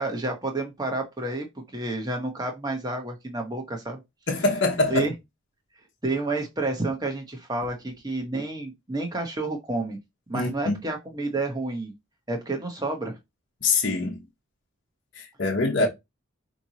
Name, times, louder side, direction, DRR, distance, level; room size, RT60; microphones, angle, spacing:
voice 1, 0.0-1.5 1.7-4.0 4.9-5.1 6.0-10.0 10.3-11.9 12.3-13.2 15.6-15.9, right 2 dB, 20° right, 1.1 m, -30 dB
voice 2, 4.3-5.1 10.3-10.8 13.6-14.2 15.1-15.9, left 3 dB, 55° left, 1.1 m, -24 dB
5.1 x 2.9 x 2.8 m
head